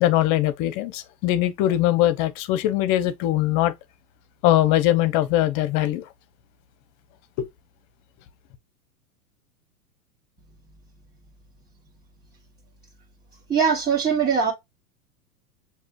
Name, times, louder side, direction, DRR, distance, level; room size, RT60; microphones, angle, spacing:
voice 1, 0.0-3.7 4.4-6.0 7.4-7.5, left 14 dB, 40° left, 0.9 m, -21 dB
voice 2, 13.5-14.5, right 6 dB, 20° right, 1.3 m, -21 dB
6.4 x 2.9 x 2.6 m
hypercardioid pair, 100°, 46 cm